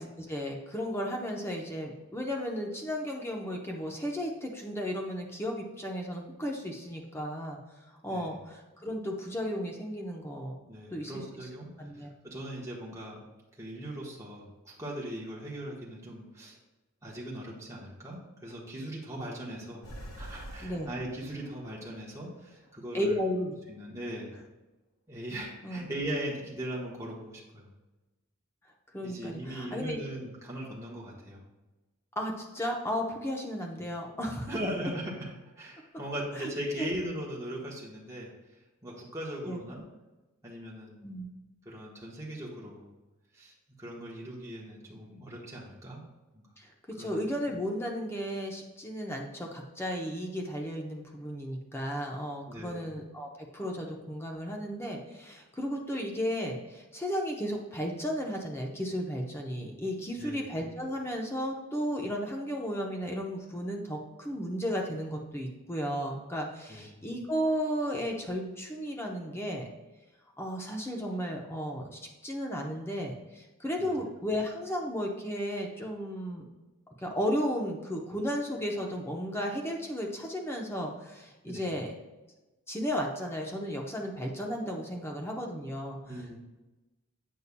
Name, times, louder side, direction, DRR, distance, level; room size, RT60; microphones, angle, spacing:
voice 1, 0.0-7.6 8.0-10.6 10.9-11.2 11.8-12.1 20.6-20.9 22.9-23.5 25.6-25.9 28.9-30.0 32.2-34.5 36.4-36.5 36.8-36.9 39.5-39.6 41.0-41.3 46.6-69.7 70.4-76.4 76.9-81.9 82.7-86.0, equal, 10° left, 0 dB, 0.8 m, -34 dB
voice 2, 10.7-13.3 13.6-16.6 17.0-19.8 20.2-23.2 23.7-24.3 25.1-27.7 29.0-31.4 33.8-33.9 34.5-35.3 35.6-38.3 38.8-39.8 40.4-41.1 41.6-42.9 43.3-43.5 43.8-46.0 46.3-46.5 47.0-47.1 52.5-52.9 60.1-60.4 66.7-67.0 73.8-73.9 81.4-81.7 86.0-86.4, right 1 dB, 15° right, -5 dB, 1.2 m, -39 dB
sound 1, 19.8-23.2, equal, 70° left, 2.0 m, -47 dB
8.3 x 5.5 x 2.2 m, 1.1 s
head